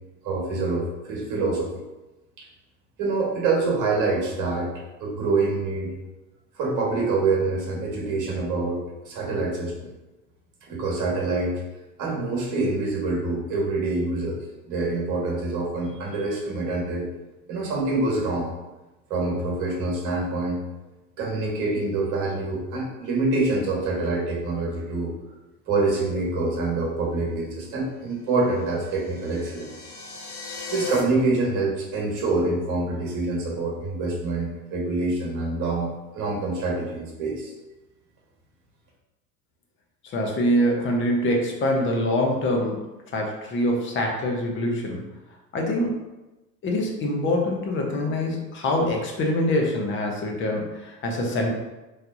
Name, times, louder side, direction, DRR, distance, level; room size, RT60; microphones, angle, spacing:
voice 1, 0.2-1.8 2.4-2.5 3.0-5.9 6.6-9.9 10.7-11.6 12.0-17.1 17.5-18.5 19.1-20.6 21.2-25.1 25.7-29.7 30.5-37.5, right 3 dB, 40° right, -2 dB, 1.5 m, -26 dB
sound 1, 28.4-31.0, left 6 dB, 55° left, 1.0 m, -36 dB
voice 2, 40.0-42.8 43.1-45.0 45.5-46.0 46.6-51.5, left 1 dB, 25° left, 1 dB, 0.8 m, -24 dB
4.2 x 3.3 x 2.6 m, 1.0 s
figure-of-eight pair, 90°, 50 cm